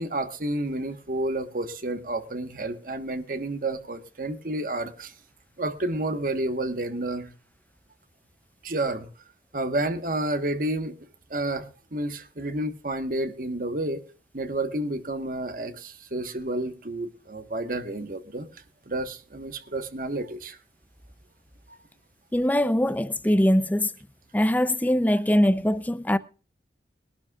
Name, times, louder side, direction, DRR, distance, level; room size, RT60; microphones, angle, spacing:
voice 1, 0.0-5.1 5.6-7.3 8.6-9.1 9.5-10.9 11.3-14.0 14.3-18.5 18.9-20.6 21.7-21.8, right 1 dB, 50° right, 1.4 m, -30 dB
voice 2, 22.3-23.9 24.3-26.2, equal, 10° left, 0.5 m, -22 dB
22.0 x 11.5 x 2.4 m
head